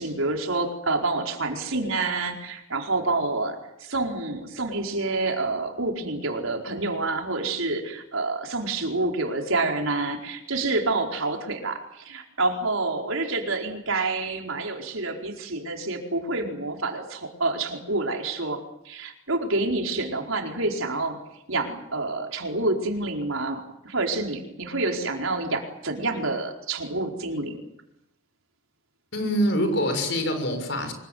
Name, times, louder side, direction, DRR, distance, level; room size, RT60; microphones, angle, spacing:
voice 1, 0.0-21.2 21.5-27.6, right 2 dB, 75° right, 3 dB, 4.6 m, -28 dB
voice 2, 29.1-30.9, equal, 55° left, 6 dB, 6.6 m, -25 dB
25.5 x 22.0 x 9.4 m, 0.82 s
head